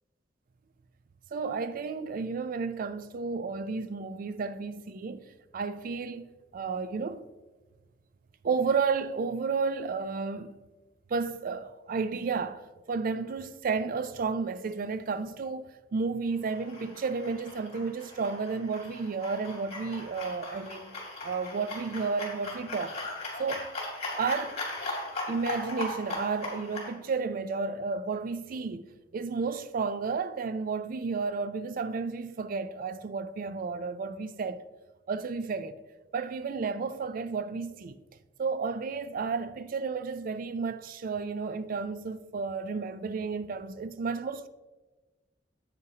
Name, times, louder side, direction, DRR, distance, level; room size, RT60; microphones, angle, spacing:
voice 1, 1.3-5.3 5.5-7.3 8.4-10.5 11.1-12.6 12.9-20.9 21.2-23.0 23.4-23.8 24.2-24.6 25.3-28.8 29.1-34.6 35.1-35.8 36.1-38.0 38.4-44.5, right 4 dB, 50° right, 0.4 m, -32 dB
sound 1, 16.4-26.9, left 2 dB, 35° left, 2.6 m, -39 dB
9.5 x 8.1 x 2.8 m
head